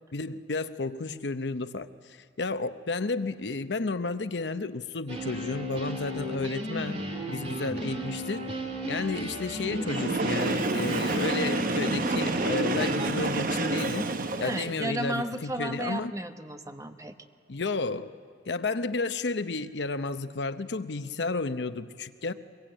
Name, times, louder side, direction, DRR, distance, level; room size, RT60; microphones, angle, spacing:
voice 1, 0.1-8.5 8.9-14.1 14.4-16.1 17.5-18.1 18.5-22.3, left 3 dB, 80° left, 11 dB, 0.8 m, -32 dB
sound 1, 5.1-13.1, right 1 dB, 35° right, 2.6 m, -35 dB
Train, 9.8-14.8, right 2 dB, 50° right, 0.9 m, -29 dB
voice 2, 14.4-17.1, right 1 dB, 20° right, 7 dB, 1.0 m, -34 dB
23.5 x 21.5 x 8.9 m, 2.1 s
head